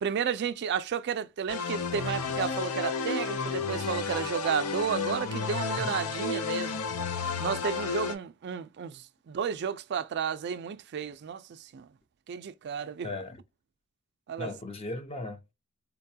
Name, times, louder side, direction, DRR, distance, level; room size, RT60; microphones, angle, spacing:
voice 1, 0.0-6.8 7.4-11.9 12.3-13.1 14.3-14.5, right 7 dB, 50° right, 0.3 m, -32 dB
sound 1, 1.5-8.1, left 4 dB, 85° left, 0.6 m, -32 dB
voice 2, 13.0-13.4 14.4-15.5, left 2 dB, 25° left, 0.6 m, -37 dB
4.0 x 2.2 x 2.7 m
head